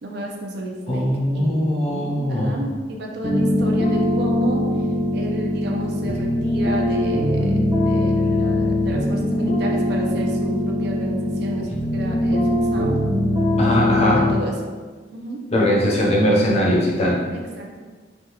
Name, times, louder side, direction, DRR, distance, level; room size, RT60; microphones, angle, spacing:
voice 1, 0.0-4.9 5.1-13.0 13.7-14.8 15.1-15.4 17.3-17.8, right 1 dB, 65° right, 0 dB, 0.5 m, -31 dB
voice 2, 0.9-2.6 13.6-14.2 15.5-17.2, equal, 35° left, -3 dB, 0.6 m, -20 dB
sound 1, 3.2-14.4, left 1 dB, 30° right, 0.8 m, -21 dB
3.4 x 2.3 x 2.8 m, 1.4 s
head